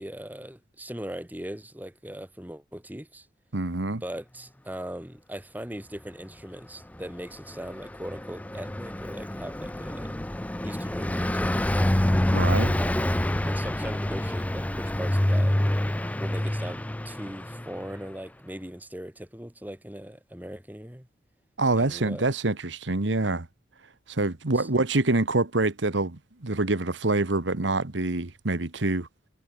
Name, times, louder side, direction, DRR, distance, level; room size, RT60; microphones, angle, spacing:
voice 1, 0.0-3.3 3.9-10.2 10.6-12.0 12.8-15.6 16.2-21.1 21.7-22.3 24.5-24.7, equal, 10° right, 2.1 m, -39 dB
voice 2, 3.5-4.0 12.3-12.8 21.6-23.5 24.1-29.1, right 2 dB, 90° right, 1.5 m, -26 dB
Car passing by, 7.0-18.0, left 1 dB, 10° left, 0.5 m, -27 dB
head